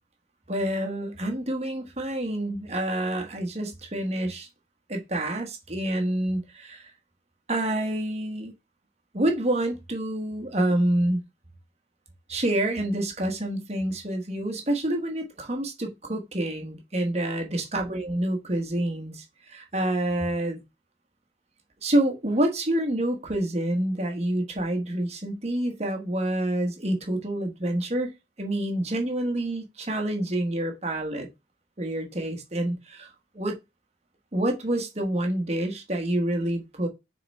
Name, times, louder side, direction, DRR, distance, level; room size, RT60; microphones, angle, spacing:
voice 1, 0.5-4.5 4.9-6.9 7.5-8.5 9.1-11.2 12.3-20.6 21.8-28.1 28.4-31.3 31.8-33.1 33.3-33.6 34.3-36.9, right 1 dB, 35° right, 1.3 m, -27 dB
6.8 x 3.8 x 4.2 m
head